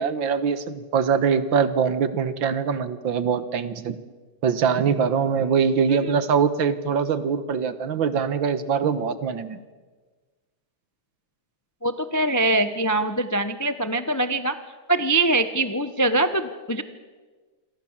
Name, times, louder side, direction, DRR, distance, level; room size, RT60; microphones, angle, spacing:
voice 1, 0.0-4.0 4.4-9.6, right 6 dB, 70° right, 13 dB, 1.9 m, -23 dB
voice 2, 11.8-14.5 14.9-16.8, right 2 dB, 20° left, 10 dB, 0.5 m, -23 dB
28.0 x 23.5 x 7.4 m, 1.4 s
omnidirectional pair, 2.2 m